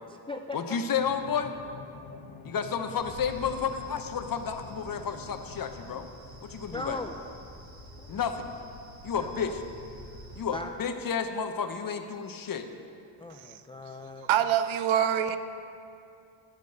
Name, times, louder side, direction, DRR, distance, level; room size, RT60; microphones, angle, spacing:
voice 1, 0.0-0.6 6.7-7.2 8.0-8.2 9.2-9.6 10.5-10.7 13.2-14.3, left 2 dB, 10° left, 4 dB, 0.3 m, -39 dB
voice 2, 0.5-1.6 2.4-6.1 6.4-7.0 8.1-8.5 9.0-9.6 10.4-12.7, left 6 dB, 45° left, 7 dB, 0.8 m, -31 dB
sound 1, 1.0-6.1, left 4 dB, 75° left, 1.0 m, -47 dB
sound 2, 2.9-10.4, equal, 45° right, 2.3 m, -48 dB
voice 3, 14.3-15.4, right 10 dB, 75° right, 11 dB, 0.7 m, -24 dB
11.5 x 5.3 x 7.8 m, 2.6 s
cardioid pair, 90°, 48 cm